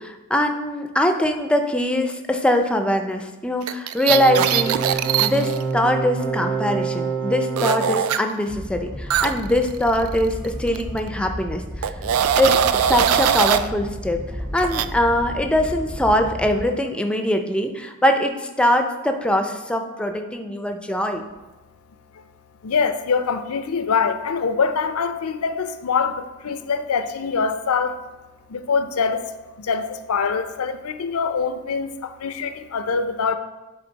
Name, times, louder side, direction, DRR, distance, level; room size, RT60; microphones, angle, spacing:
voice 1, 0.0-11.9 12.4-14.2 14.5-21.2, left 1 dB, 5° left, 5 dB, 0.5 m, -22 dB
sound 1, 3.6-5.6 7.6-8.2 9.1-10.5 10.7-11.0 11.8-13.7 14.6-14.9, right 9 dB, 70° right, 0.4 m, -21 dB
sound 2, 4.1-8.0, right 5 dB, 55° right, 0.8 m, -26 dB
Animal, 8.5-16.6, equal, 20° right, 0.9 m, -33 dB
voice 2, 22.6-28.0 28.5-29.2 29.6-33.4, left 5 dB, 70° left, 11 dB, 0.5 m, -24 dB
11.0 x 4.0 x 4.0 m, 1.1 s
head